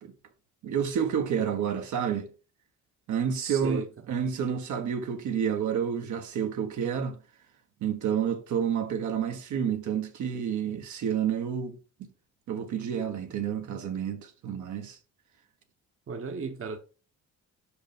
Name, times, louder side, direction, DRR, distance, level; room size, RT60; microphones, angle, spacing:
voice 1, 0.6-2.3 3.1-3.8 4.1-7.2 7.8-11.8 12.5-15.0, right 8 dB, 75° right, 1.4 m, -29 dB
voice 2, 3.3-3.9 16.1-16.8, right 5 dB, 45° right, 1.2 m, -34 dB
5.4 x 5.1 x 5.1 m
cardioid pair, 90°, 30 cm